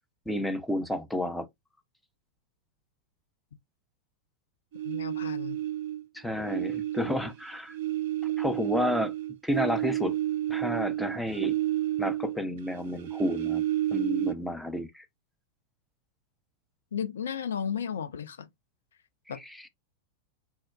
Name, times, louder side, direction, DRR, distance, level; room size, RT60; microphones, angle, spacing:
voice 1, 0.3-1.5 6.1-7.8 8.4-9.1 9.4-10.2 10.5-11.6 12.0-13.6 13.9-15.0, left 1 dB, 5° left, 0.5 m, -31 dB
sound 1, 4.7-6.0 6.4-12.5 12.7-14.3, right 13 dB, 55° right, 0.4 m, -30 dB
voice 2, 4.8-5.6 16.9-18.5 19.3-19.4, left 7 dB, 65° left, 0.4 m, -34 dB
4.4 x 2.2 x 2.3 m
figure-of-eight pair, 90°, 0 cm